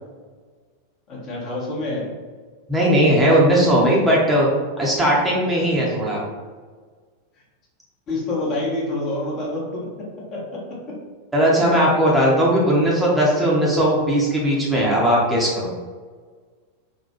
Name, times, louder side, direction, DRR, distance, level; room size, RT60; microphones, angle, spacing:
voice 1, 1.1-2.1 5.6-6.2 8.1-9.9 10.3-11.0 11.7-11.8 12.4-12.5, left 2 dB, 35° left, -4 dB, 1.0 m, -28 dB
voice 2, 2.7-4.5 4.8-6.2 11.3-15.7, equal, 5° right, -6 dB, 0.8 m, -18 dB
4.1 x 2.2 x 2.9 m, 1.5 s
figure-of-eight pair, 90°, 0 cm